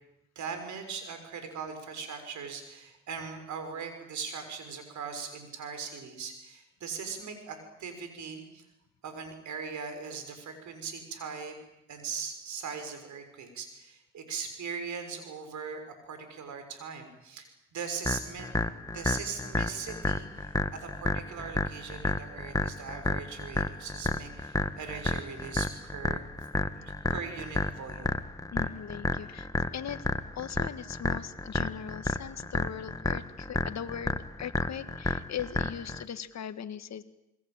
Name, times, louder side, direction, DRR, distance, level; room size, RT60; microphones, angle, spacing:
voice 1, 0.3-8.6 9.0-11.6 11.9-18.5 18.8-26.3 26.7-28.1, right 6 dB, 75° right, 7 dB, 6.4 m, -40 dB
sound 1, 18.0-36.0, left 2 dB, 10° left, 1.6 m, -31 dB
voice 2, 28.5-30.0 30.4-37.0, left 9 dB, 65° left, 12 dB, 1.8 m, -39 dB
28.0 x 21.5 x 9.1 m, 0.87 s
supercardioid pair, 65°, 29 cm